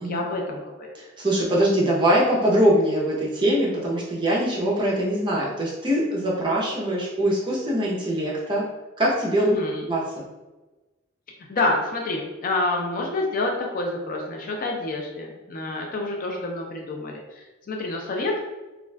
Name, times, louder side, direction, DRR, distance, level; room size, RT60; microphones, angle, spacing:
voice 1, 0.0-1.0 9.4-9.9 11.5-18.4, left 2 dB, 45° left, 1 dB, 0.4 m, -28 dB
voice 2, 1.0-8.6 9.0-9.5 9.9-10.0, right 1 dB, 25° right, -4 dB, 0.6 m, -22 dB
2.4 x 2.3 x 3.2 m, 1.2 s
head